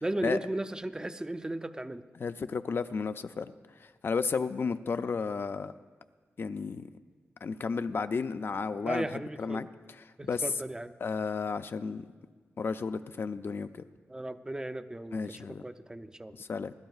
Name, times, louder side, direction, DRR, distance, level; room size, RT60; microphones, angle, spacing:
voice 1, 0.0-2.1 8.8-9.7 10.2-10.9 14.1-16.4, right 1 dB, 15° right, 10 dB, 0.4 m, -36 dB
voice 2, 2.2-3.5 3.8-5.7 6.4-6.9 7.4-9.7 10.3-10.4 11.0-12.0 12.6-13.8 15.1-15.6 16.3-16.7, left 5 dB, 50° left, 9 dB, 0.4 m, -33 dB
25.0 x 12.5 x 2.4 m, 1.5 s
wide cardioid pair, 130°, 5 cm